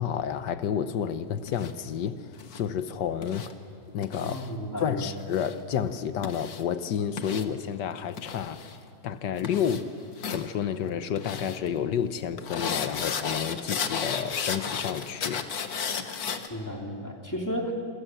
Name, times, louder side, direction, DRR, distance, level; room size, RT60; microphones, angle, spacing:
voice 1, 0.0-3.5 3.9-4.4 4.8-8.7 9.0-9.9 10.3-15.5, left 8 dB, 85° left, 11 dB, 1.6 m, -30 dB
sound 1, 1.5-1.7 2.4-2.6 3.2-3.5 4.0-4.5 5.2-5.6 6.2-6.6 7.2-7.5 8.2-8.8 9.4-9.8 10.2-10.5 11.2-11.6 12.4-16.5, left 6 dB, 60° left, 1.8 m, -34 dB
voice 2, 4.2-5.1 16.5-17.7, equal, 10° left, 1 dB, 2.9 m, -33 dB
27.0 x 26.5 x 7.8 m, 2.4 s
omnidirectional pair, 1.8 m